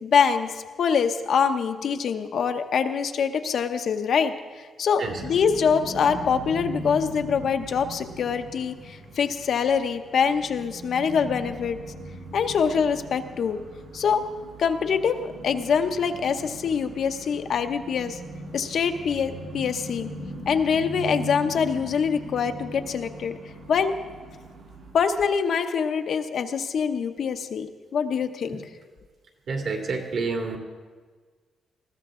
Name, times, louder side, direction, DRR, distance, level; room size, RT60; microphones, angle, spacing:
voice 1, 0.0-11.8 12.3-13.6 13.9-14.2 14.6-18.2 18.5-20.1 20.5-23.4 23.7-24.0 24.9-28.6, left 6 dB, 60° left, 7 dB, 0.8 m, -24 dB
sound 1, 5.0-24.9, right 1 dB, 90° right, 3.8 m, -40 dB
voice 2, 29.5-30.6, right 4 dB, 60° right, 2 dB, 2.4 m, -28 dB
20.5 x 14.5 x 3.7 m, 1.5 s
wide cardioid pair, 150°, 0 cm